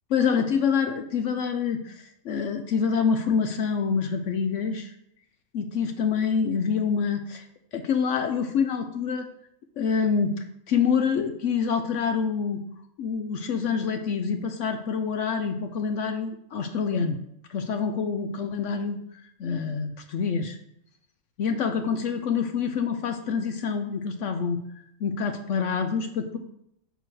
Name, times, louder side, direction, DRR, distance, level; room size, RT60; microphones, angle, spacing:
voice 1, 0.1-4.9 5.5-7.4 7.7-9.3 9.8-12.6 13.0-17.2 17.5-19.0 19.4-20.6 21.4-24.6 25.0-26.4, left 6 dB, 65° left, 6 dB, 0.9 m, -26 dB
6.8 x 4.6 x 6.1 m, 0.76 s
omnidirectional pair, 1.4 m